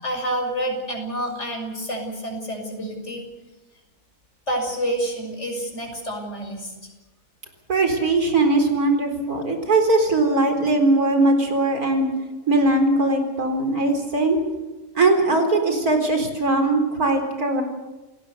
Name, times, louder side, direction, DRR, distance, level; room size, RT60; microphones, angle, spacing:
voice 1, 0.0-3.2 4.5-6.9, right 1 dB, 45° left, 2 dB, 6.2 m, -28 dB
voice 2, 7.7-12.1 12.5-14.4 15.0-17.6, right 2 dB, 70° right, 5 dB, 4.6 m, -20 dB
29.0 x 18.0 x 6.8 m, 1.1 s
omnidirectional pair, 1.7 m